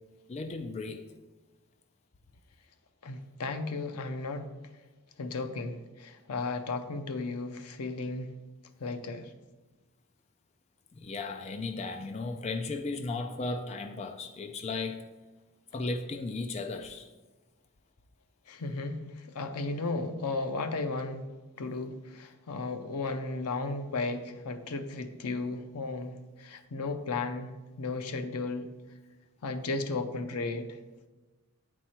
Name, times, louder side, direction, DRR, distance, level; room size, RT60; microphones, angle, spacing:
voice 1, 0.3-1.1 10.9-15.0 15.7-17.1, left 3 dB, 30° left, 0.3 m, -35 dB
voice 2, 3.0-4.5 5.2-8.3 8.8-9.3 18.5-21.3 21.6-28.7 29.4-30.8, left 3 dB, 85° left, 0.6 m, -35 dB
8.7 x 4.7 x 4.3 m
head